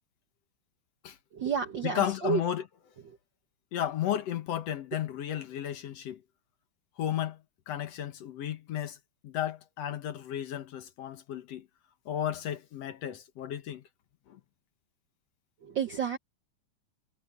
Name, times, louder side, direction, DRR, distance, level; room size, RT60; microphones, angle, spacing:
voice 1, 1.3-2.4 3.0-3.2 15.6-16.2, right 7 dB, 65° right, 1.1 m, -31 dB
voice 2, 1.8-2.6 3.7-6.2 7.0-7.4 7.7-9.0 9.2-11.7 12.1-13.8 14.3-14.4, left 11 dB, 65° left, 2.0 m, -33 dB
omnidirectional pair, 3.4 m